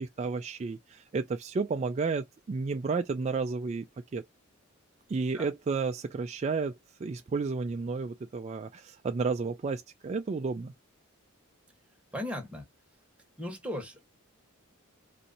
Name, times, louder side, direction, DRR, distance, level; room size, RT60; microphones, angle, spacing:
voice 1, 0.0-3.9 4.1-4.2 5.1-6.7 7.0-10.7, right 4 dB, 30° right, 0.3 m, -32 dB
voice 2, 12.1-12.6 13.4-14.0, left 1 dB, 5° right, 1.2 m, -37 dB
4.3 x 2.6 x 2.6 m
head